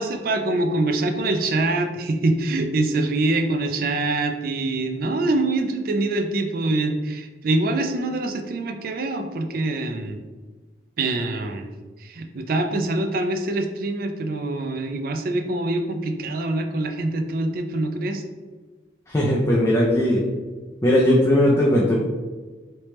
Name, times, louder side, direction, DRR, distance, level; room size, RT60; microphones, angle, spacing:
voice 1, 0.0-10.2 11.0-11.7 12.0-18.2, right 2 dB, 55° right, 6 dB, 0.4 m, -24 dB
voice 2, 19.1-20.2 20.8-22.0, left 1 dB, 15° left, -4 dB, 0.4 m, -18 dB
3.3 x 3.0 x 3.1 m, 1.3 s
head